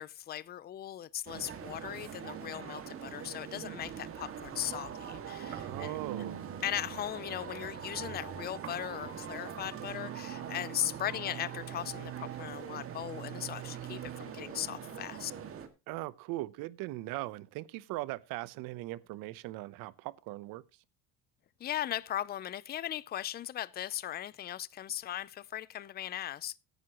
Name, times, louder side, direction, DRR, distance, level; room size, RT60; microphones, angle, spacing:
voice 1, 0.0-6.0 6.6-15.3 21.6-26.6, left 12 dB, 25° left, 0.5 m, -38 dB
sound 1, 1.3-15.7, right 8 dB, 35° right, 2.0 m, -42 dB
voice 2, 5.5-6.5 15.9-20.6, right 18 dB, 65° right, 0.8 m, -39 dB
16.5 x 9.4 x 3.0 m
supercardioid pair, 120°, 37 cm